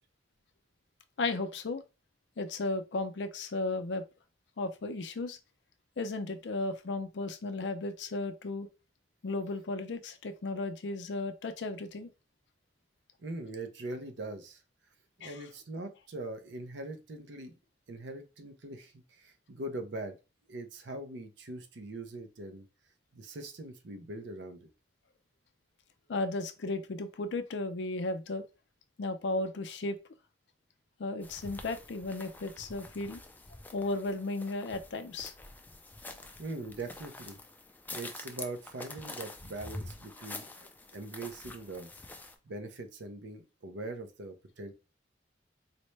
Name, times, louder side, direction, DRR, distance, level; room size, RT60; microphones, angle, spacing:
voice 1, 1.2-1.8 2.4-4.0 4.6-5.4 6.0-8.7 9.2-12.1 15.2-15.4 26.1-28.4 29.0-30.0 31.0-33.2 33.7-35.3, left 2 dB, 70° left, 0.5 m, -35 dB
voice 2, 13.2-14.6 15.2-17.5 17.9-20.2 20.5-22.7 23.1-24.7 36.4-37.4 37.9-42.2 42.5-44.7, right 2 dB, 75° right, 0.6 m, -42 dB
sound 1, 31.2-42.3, left 2 dB, 10° left, 0.3 m, -47 dB
4.2 x 2.1 x 3.1 m
head